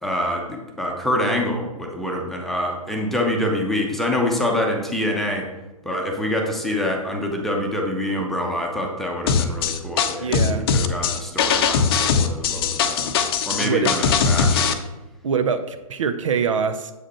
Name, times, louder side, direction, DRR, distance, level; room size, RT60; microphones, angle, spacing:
voice 1, 0.0-5.5 5.8-13.1 13.5-14.8, left 1 dB, ahead, 0 dB, 0.9 m, -26 dB
sound 1, 9.3-14.7, left 6 dB, 40° left, 0.6 m, -20 dB
voice 2, 10.2-10.7 13.6-13.9 15.2-16.9, right 6 dB, 60° right, 10 dB, 0.6 m, -24 dB
7.8 x 4.9 x 4.3 m, 1.1 s
figure-of-eight pair, 125°, 19 cm